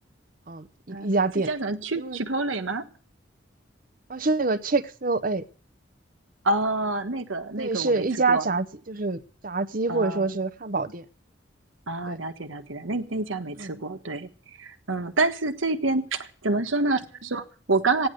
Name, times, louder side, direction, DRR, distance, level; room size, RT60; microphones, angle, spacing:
voice 1, 0.5-1.5 2.0-2.2 4.1-5.4 7.6-11.0 12.1-12.2 13.6-13.7, right 3 dB, 45° right, 0.8 m, -26 dB
voice 2, 1.5-2.9 6.4-8.5 9.9-10.4 11.9-18.1, right 2 dB, 90° right, 1.4 m, -28 dB
15.0 x 10.0 x 6.6 m
head